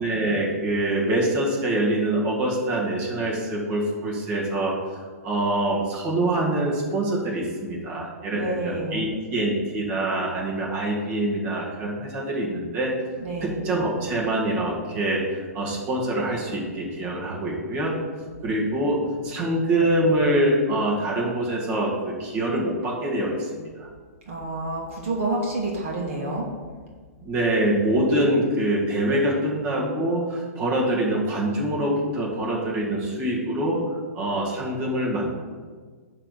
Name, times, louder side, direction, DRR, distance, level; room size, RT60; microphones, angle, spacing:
voice 1, 0.0-4.8 5.2-12.9 13.4-17.9 18.4-23.9 27.2-33.8 34.1-35.3, right 1 dB, 25° right, -4 dB, 1.8 m, -25 dB
voice 2, 8.3-9.1 13.2-13.6 24.3-26.5, right 2 dB, 50° right, -2 dB, 1.7 m, -28 dB
9.9 x 3.4 x 6.6 m, 1.5 s
hypercardioid pair, 165°, 9 cm